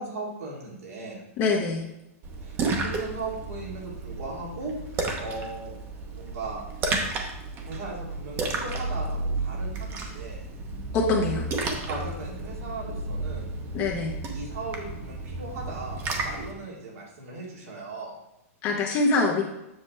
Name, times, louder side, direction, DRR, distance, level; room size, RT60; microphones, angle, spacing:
voice 1, 0.0-1.2 2.4-4.8 5.2-5.7 6.1-6.6 7.6-10.4 11.9-13.5 14.3-18.2, right 3 dB, 80° right, -4 dB, 2.8 m, -37 dB
voice 2, 1.4-1.8 10.9-11.5 13.7-14.1 18.6-19.4, left 3 dB, 35° left, -1 dB, 0.9 m, -24 dB
Splash splatter, 2.2-16.5, right 3 dB, 30° right, 0.9 m, -32 dB
7.4 x 6.0 x 3.3 m, 0.88 s
hypercardioid pair, 145°, 8 cm